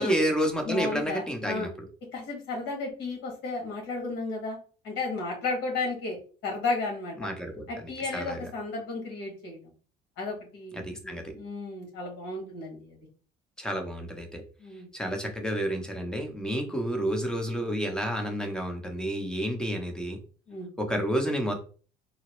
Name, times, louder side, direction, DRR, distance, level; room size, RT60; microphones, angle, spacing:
voice 1, 0.0-1.7 7.2-8.5 10.7-11.3 13.6-14.4 14.9-20.2 20.8-21.5, equal, 5° left, 4 dB, 0.7 m, -30 dB
voice 2, 0.6-1.7 2.1-4.6 4.8-7.2 7.7-9.6 10.2-13.0 14.6-14.9 20.5-20.7, left 3 dB, 85° left, 0 dB, 1.6 m, -33 dB
3.9 x 2.1 x 3.0 m, 0.39 s
cardioid pair, 110°, 17 cm